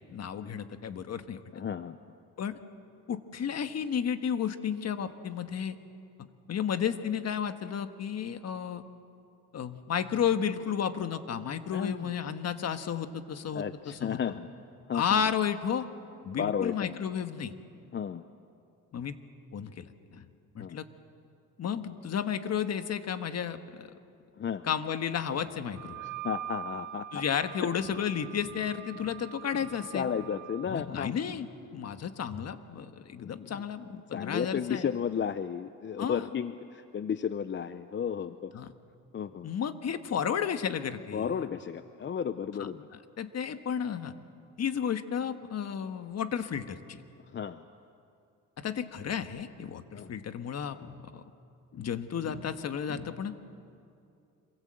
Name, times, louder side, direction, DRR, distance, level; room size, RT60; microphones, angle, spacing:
voice 1, 0.0-1.4 2.4-2.6 3.1-5.8 6.2-8.8 9.5-14.2 14.9-15.9 16.2-17.5 18.9-19.2 19.5-20.3 20.5-20.9 21.6-23.9 24.6-26.0 27.1-30.1 30.7-34.9 36.0-36.2 38.5-38.7 39.4-41.3 43.2-44.1 44.6-47.0 48.6-51.2 51.7-53.4, left 8 dB, 50° left, 9 dB, 1.5 m, -32 dB
voice 2, 1.5-2.0 11.7-12.1 13.5-14.5 14.9-15.2 16.4-16.9 17.9-18.3 20.6-20.8 24.4-24.7 26.0-27.2 27.6-27.7 29.9-31.1 33.2-33.6 34.1-38.5 39.1-39.5 41.1-42.9 47.3-47.7 49.9-50.1, left 7 dB, 35° left, 11 dB, 0.7 m, -33 dB
Wind instrument woodwind instrument, 25.7-30.7, right 12 dB, 65° right, 1.2 m, -43 dB
26.5 x 23.5 x 7.7 m, 2.5 s
cardioid pair, 100°, 33 cm